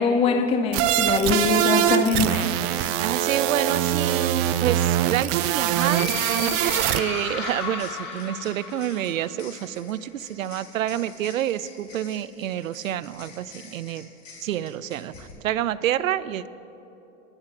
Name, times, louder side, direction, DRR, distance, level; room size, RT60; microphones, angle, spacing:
voice 1, 0.0-2.5, left 4 dB, 15° left, 7 dB, 0.4 m, -22 dB
sound 1, 0.7-0.9 1.7-15.3, left 4 dB, 75° left, 2.6 m, -48 dB
sound 2, 0.7-7.0, right 12 dB, 35° right, 0.5 m, -23 dB
voice 2, 3.0-6.1 6.9-14.1 14.4-16.5, right 11 dB, 85° right, 17 dB, 0.5 m, -28 dB
sound 3, 5.7-9.4, left 5 dB, 50° left, 2.4 m, -34 dB
27.0 x 10.5 x 2.5 m, 3.0 s
hypercardioid pair, 95°, 39 cm